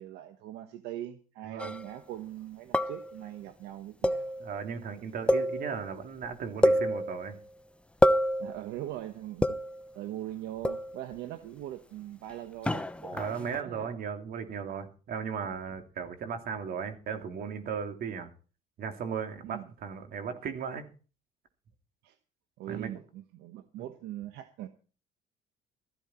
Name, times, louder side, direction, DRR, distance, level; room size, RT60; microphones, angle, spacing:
voice 1, 0.0-4.3 8.4-9.6 9.9-14.0 19.4-19.7 22.0-22.1 22.6-24.7, right 13 dB, 85° right, 1.2 m, -41 dB
sound 1, 1.6-1.9 2.7-3.2 4.0-4.6 5.3-5.9 6.2-6.3 6.6-7.4 8.0-8.6 9.4-9.9 10.6-11.1 12.7-13.6, equal, 5° left, 0.8 m, -27 dB
voice 2, 4.4-7.4 13.1-18.3 18.8-20.9 22.7-22.9 23.8-23.9, right 6 dB, 60° right, 3.0 m, -36 dB
14.5 x 13.5 x 4.4 m
cardioid pair, 110°, 17 cm